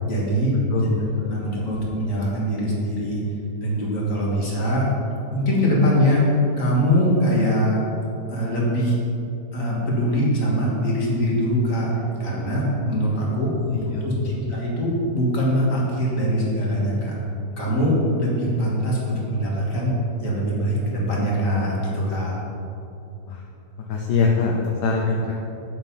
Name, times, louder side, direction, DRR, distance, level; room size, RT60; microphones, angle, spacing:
voice 1, 0.1-0.9 1.3-3.2 3.6-4.9 5.3-6.3 6.6-7.8 8.3-9.0 9.5-11.9 12.2-13.5 14.0-17.1 17.6-19.9 20.2-22.4, equal, 50° left, -4 dB, 2.2 m, -22 dB
voice 2, 0.7-1.5 13.2-13.3 13.6-14.4 23.3-23.4 23.8-25.3, left 4 dB, 75° left, 0 dB, 1.3 m, -24 dB
7.1 x 6.9 x 5.6 m, 2.8 s
omnidirectional pair, 1.8 m